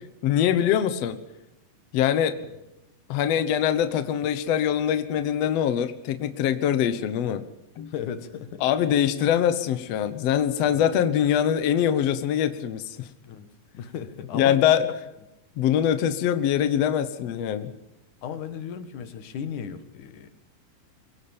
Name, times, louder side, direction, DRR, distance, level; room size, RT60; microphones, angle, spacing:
voice 1, 0.2-1.2 1.9-2.4 3.1-7.4 7.8-7.9 8.6-13.1 14.3-14.9 15.6-17.7, left 9 dB, 75° left, 11 dB, 1.4 m, -23 dB
voice 2, 7.9-8.6 13.2-13.5 13.7-14.8 18.2-20.3, left 8 dB, 60° left, 11 dB, 2.7 m, -36 dB
23.5 x 18.5 x 8.8 m, 0.93 s
omnidirectional pair, 4.6 m